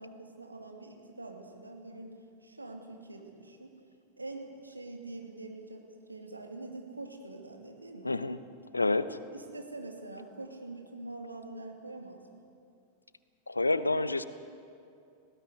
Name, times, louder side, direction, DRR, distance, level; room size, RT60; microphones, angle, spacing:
voice 1, 0.0-3.7 4.2-8.1 9.3-12.4, right 2 dB, 80° right, 3 dB, 2.6 m, -45 dB
voice 2, 8.0-8.4 8.7-9.2 13.5-14.2, left 2 dB, 80° left, 14 dB, 0.9 m, -28 dB
19.0 x 17.0 x 9.6 m, 2.5 s
figure-of-eight pair, 90°, 0 cm